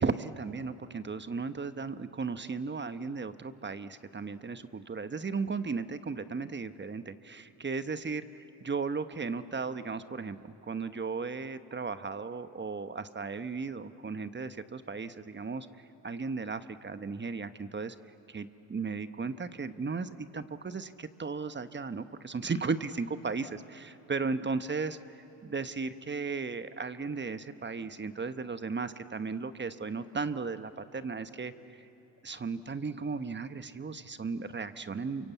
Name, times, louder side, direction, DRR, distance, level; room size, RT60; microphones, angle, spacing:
voice 1, 0.0-15.7 16.0-17.9 18.3-31.8 32.2-35.3, right 4 dB, 25° right, 11 dB, 1.1 m, -36 dB
28.5 x 24.5 x 8.4 m, 2.9 s
supercardioid pair, 65°, 43 cm